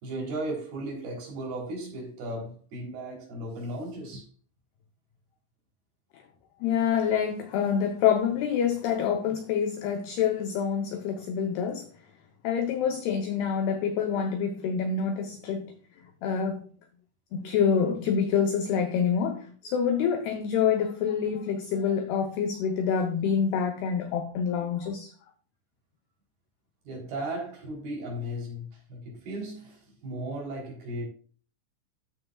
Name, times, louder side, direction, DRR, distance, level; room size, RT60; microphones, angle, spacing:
voice 1, 0.0-4.2 26.9-31.1, right 1 dB, 55° right, 5.2 m, -36 dB
voice 2, 6.6-11.9 12.4-15.7 16.2-16.7 17.3-25.1, left 7 dB, 80° left, 2.3 m, -27 dB
13.5 x 7.8 x 2.4 m
omnidirectional pair, 5.7 m